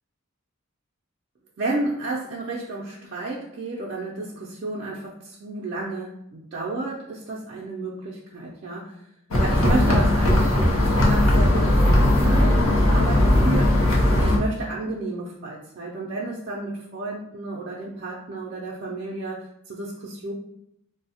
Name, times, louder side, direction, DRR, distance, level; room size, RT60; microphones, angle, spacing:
voice 1, 1.6-9.1 9.4-13.8 14.1-20.3, right 2 dB, 50° right, -4 dB, 0.4 m, -32 dB
sound 1, 9.3-14.4, left 1 dB, 75° left, 0.6 m, -18 dB
3.1 x 2.0 x 2.7 m, 0.77 s
head